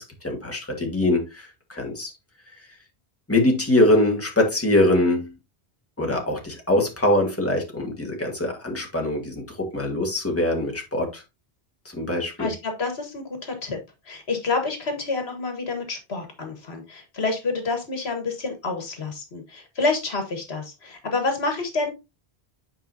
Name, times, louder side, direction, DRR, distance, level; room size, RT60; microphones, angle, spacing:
voice 1, 0.0-2.1 3.3-5.3 6.0-11.2 11.9-12.5, left 1 dB, 15° left, 1.7 m, -23 dB
voice 2, 12.4-13.8 14.1-21.9, left 3 dB, 75° left, 1.7 m, -28 dB
8.9 x 5.0 x 2.7 m
omnidirectional pair, 1.1 m